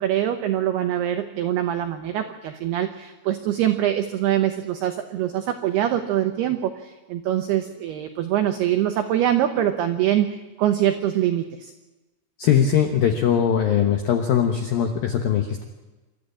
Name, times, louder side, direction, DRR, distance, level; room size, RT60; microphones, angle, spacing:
voice 1, 0.0-11.7, right 11 dB, 90° right, 7 dB, 2.3 m, -24 dB
voice 2, 12.4-15.6, left 8 dB, 80° left, 4 dB, 2.1 m, -21 dB
27.5 x 13.0 x 8.6 m, 1.2 s
omnidirectional pair, 6.0 m